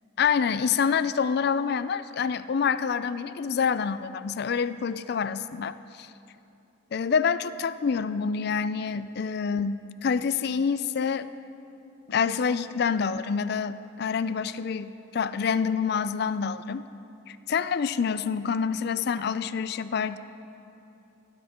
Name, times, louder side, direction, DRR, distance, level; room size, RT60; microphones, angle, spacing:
voice 1, 0.2-6.1 6.9-11.3 12.1-16.9 17.3-20.2, left 6 dB, 50° left, 14 dB, 0.4 m, -27 dB
19.5 x 13.0 x 3.7 m, 2.8 s
head